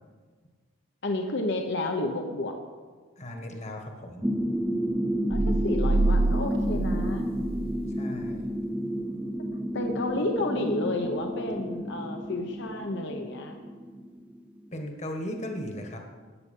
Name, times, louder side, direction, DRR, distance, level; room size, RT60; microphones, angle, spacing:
voice 1, 1.0-2.6 5.3-7.3 9.7-13.6, left 2 dB, 55° left, 4 dB, 1.0 m, -31 dB
voice 2, 3.2-4.4 7.9-8.5 14.7-16.0, left 1 dB, 35° left, 3 dB, 1.5 m, -37 dB
sound 1, 4.2-14.7, equal, 5° right, 0.5 m, -31 dB
sound 2, 5.3-8.0, right 2 dB, 45° right, 0.8 m, -26 dB
14.0 x 9.7 x 5.5 m, 1.5 s
head